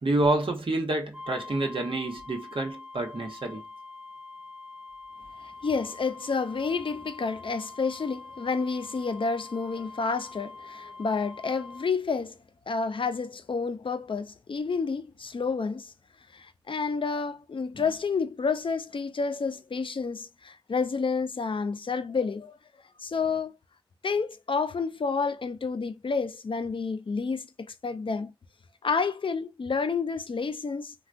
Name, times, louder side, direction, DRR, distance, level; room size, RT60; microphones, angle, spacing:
voice 1, 0.0-3.6, right 2 dB, 85° right, 0.9 m, -28 dB
sound 1, 1.1-11.9, left 3 dB, 15° right, 0.6 m, -45 dB
voice 2, 5.4-12.4 12.7-15.9 16.3-22.5 23.0-23.5 24.0-28.3 28.8-30.9, left 4 dB, 80° left, 0.4 m, -30 dB
3.4 x 2.2 x 2.5 m
wide cardioid pair, 45°, 9 cm